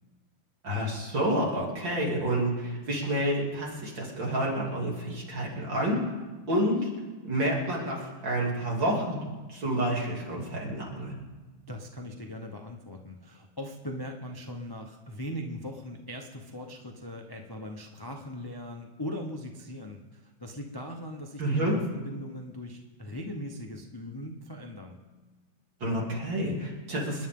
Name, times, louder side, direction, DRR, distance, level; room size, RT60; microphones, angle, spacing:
voice 1, 0.6-6.0 6.5-6.9 7.2-11.2 21.4-21.8 25.8-27.3, right 1 dB, 60° right, -3 dB, 3.7 m, -29 dB
voice 2, 11.7-25.0, left 1 dB, 35° left, 2 dB, 0.3 m, -40 dB
27.5 x 10.5 x 3.8 m, 1.3 s
omnidirectional pair, 2.3 m